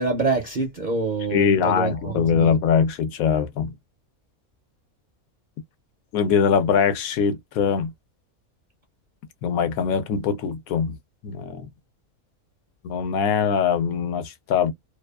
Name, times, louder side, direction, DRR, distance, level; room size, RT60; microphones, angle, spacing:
voice 1, 0.0-2.5, right 4 dB, 50° right, 0.5 m, -26 dB
voice 2, 1.3-3.7 6.1-7.9 9.4-11.0 11.2-11.7 12.8-14.7, left 7 dB, 80° left, 1.1 m, -22 dB
2.7 x 2.3 x 2.2 m
omnidirectional pair, 1.5 m